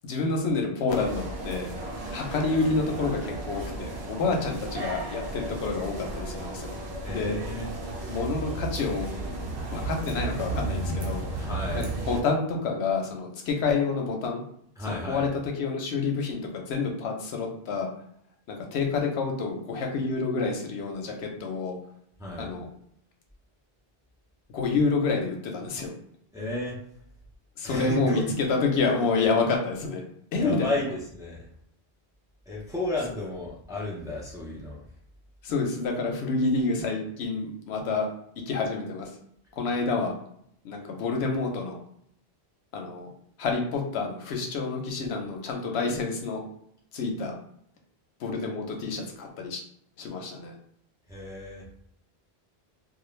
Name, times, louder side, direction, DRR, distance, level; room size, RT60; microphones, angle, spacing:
voice 1, 0.0-1.7 2.1-6.7 7.1-7.4 8.1-9.1 9.7-11.5 11.7-14.4 14.8-17.9 18.5-21.8 22.4-22.7 24.5-25.9 27.6-30.0 30.3-30.7 35.4-38.1 38.5-39.1 39.5-40.1 40.6-41.8 42.7-43.1 43.4-46.4 46.9-47.4 48.2-49.6 50.0-50.6, left 4 dB, 80° left, 2 dB, 0.9 m, -28 dB
sound 1, 0.9-12.2, right 2 dB, 80° right, 0.9 m, -34 dB
voice 2, 7.0-7.7 11.4-11.9 14.8-15.2 22.2-22.5 26.3-26.8 27.6-28.5 30.3-31.4 32.5-34.8 51.1-51.6, left 1 dB, 5° right, -4 dB, 0.5 m, -33 dB
2.4 x 2.2 x 3.1 m, 0.70 s
omnidirectional pair, 1.1 m